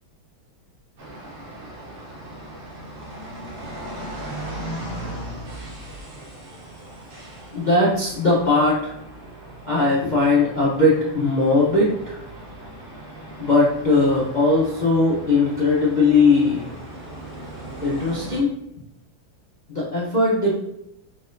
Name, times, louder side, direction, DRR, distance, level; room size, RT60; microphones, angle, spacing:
sound 1, 1.0-18.4, right 1 dB, 50° right, 0.6 m, -38 dB
voice 1, 7.5-8.9 9.7-12.2 13.4-16.7 17.8-18.5 19.7-20.6, left 3 dB, 55° left, -6 dB, 0.5 m, -19 dB
4.2 x 4.1 x 2.6 m, 0.81 s
omnidirectional pair, 2.2 m